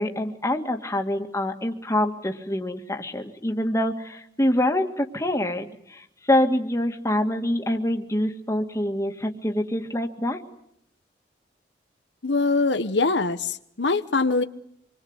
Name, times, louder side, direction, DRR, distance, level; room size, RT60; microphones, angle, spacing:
voice 1, 0.0-10.4, left 1 dB, 20° left, 4 dB, 2.1 m, -25 dB
voice 2, 12.2-14.4, left 3 dB, 85° left, 9 dB, 1.2 m, -23 dB
26.5 x 22.5 x 8.1 m, 0.75 s
head